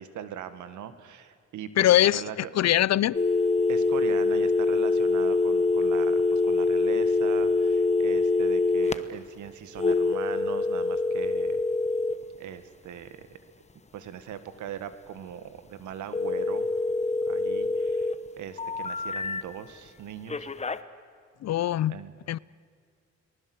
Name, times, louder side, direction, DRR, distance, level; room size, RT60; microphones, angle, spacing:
voice 1, 0.0-2.5 3.7-11.6 12.4-13.3 13.9-16.7 17.3-20.5 21.9-22.2, right 9 dB, 85° right, 1.8 m, -40 dB
voice 2, 1.8-2.2 2.5-3.2 21.4-22.0 22.3-22.4, left 13 dB, 60° left, 0.6 m, -22 dB
sound 1, 3.1-8.9 9.8-12.1 16.1-18.1 18.6-19.4 20.3-20.8, left 3 dB, 25° left, 1.1 m, -25 dB
30.0 x 20.0 x 8.0 m
cardioid pair, 90°, 29 cm